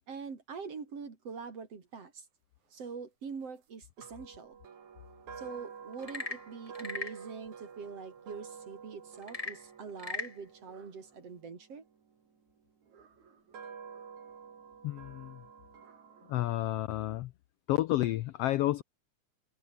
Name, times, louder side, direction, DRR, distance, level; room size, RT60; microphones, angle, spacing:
voice 1, 0.1-2.3 2.7-4.6 5.4-11.9, right 5 dB, 50° right, 4.3 m, -44 dB
sound 1, 4.0-12.1 12.9-16.4, right 6 dB, 70° right, 4.6 m, -49 dB
Frog / Percussion / Wood, 5.9-7.2 9.2-10.4, left 3 dB, 70° left, 0.3 m, -38 dB
voice 2, 14.8-15.4 16.3-17.3 17.7-18.8, left 15 dB, 85° left, 1.3 m, -30 dB
omnidirectional pair, 3.5 m